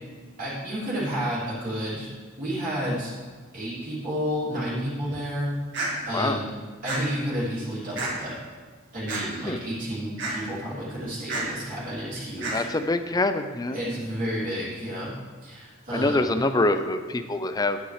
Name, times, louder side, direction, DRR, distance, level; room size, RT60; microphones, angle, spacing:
voice 1, 0.4-2.1 2.4-3.1 3.5-5.6 6.0-6.5 6.8-8.4 8.9-12.6 13.7-15.1 15.4-16.4, equal, 40° right, -9 dB, 2.8 m, -31 dB
sound 1, 5.7-5.9 6.8-7.0 8.0-8.1 9.1-9.2 10.2-10.3 11.3-11.4 12.4-12.6, right 2 dB, 55° right, 2.0 m, -29 dB
voice 2, 12.5-13.8 15.9-17.8, left 2 dB, 20° left, 9 dB, 0.4 m, -25 dB
10.5 x 9.4 x 3.3 m, 1.5 s
head